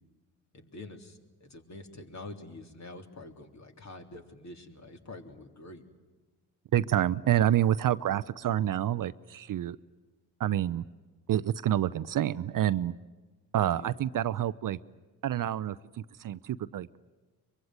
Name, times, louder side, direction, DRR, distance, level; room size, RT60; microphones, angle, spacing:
voice 1, 0.5-5.8 13.6-14.0, left 2 dB, 40° left, 4 dB, 3.5 m, -46 dB
voice 2, 6.7-9.8 10.4-10.8 11.3-12.9 13.5-14.8 15.2-15.7 16.2-16.9, right 11 dB, 50° right, 16 dB, 0.7 m, -27 dB
23.5 x 23.0 x 9.5 m, 1.2 s
hypercardioid pair, 50°, 43 cm